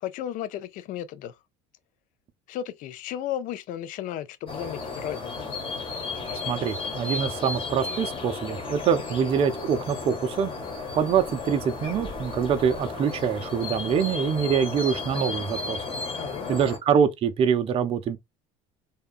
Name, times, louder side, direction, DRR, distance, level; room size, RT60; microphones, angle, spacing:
voice 1, 0.0-1.3 2.5-5.5 16.1-16.6, left 11 dB, 55° left, 0.4 m, -34 dB
sound 1, 4.5-16.8, left 3 dB, 35° left, 1.2 m, -34 dB
voice 2, 6.5-10.5 10.9-15.8 16.5-18.2, right 7 dB, 35° right, 0.4 m, -25 dB
2.7 x 2.2 x 2.4 m
supercardioid pair, 95°, 16 cm